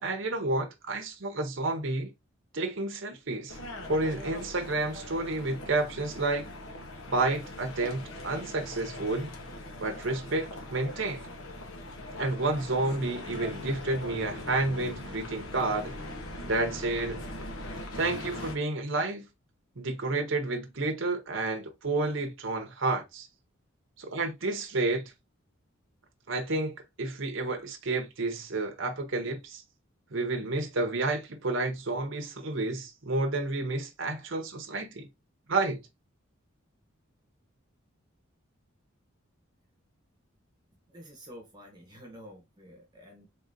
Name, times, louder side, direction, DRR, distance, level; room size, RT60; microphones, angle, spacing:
voice 1, 0.0-2.1 2.5-3.6 3.9-6.4 7.1-9.3 9.8-11.2 12.2-15.9 16.4-17.2 17.9-19.2 19.8-23.3 24.0-25.1 26.3-29.6 30.1-35.1 35.5-35.8, right 2 dB, 60° right, 0.8 m, -30 dB
sound 1, 3.5-18.6, left 1 dB, 70° left, 1.2 m, -41 dB
voice 2, 40.9-43.3, equal, 20° right, 1.1 m, -49 dB
4.1 x 3.9 x 2.7 m
head